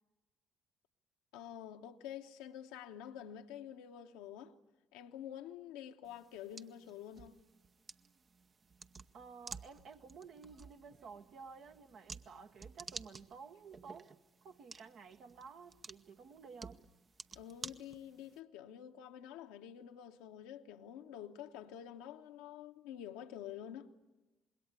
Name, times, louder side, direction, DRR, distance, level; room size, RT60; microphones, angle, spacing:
voice 1, 1.3-4.5 4.9-7.4 17.3-23.9, left 10 dB, 75° left, 1.0 m, -48 dB
sound 1, 6.0-18.4, right 4 dB, 40° right, 0.8 m, -53 dB
voice 2, 9.1-14.1 14.4-16.8, right 5 dB, 60° right, 1.3 m, -53 dB
26.0 x 21.5 x 8.3 m
hypercardioid pair, 50°, 0 cm